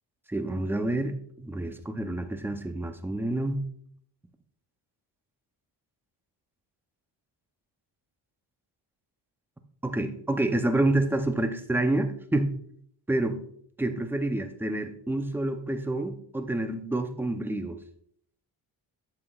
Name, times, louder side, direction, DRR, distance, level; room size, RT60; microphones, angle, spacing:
voice 1, 0.3-3.6 9.8-12.5 13.1-13.4 13.8-17.8, right 1 dB, 5° right, 7 dB, 0.4 m, -28 dB
11.5 x 7.8 x 2.3 m, 0.63 s
wide cardioid pair, 160°, 47 cm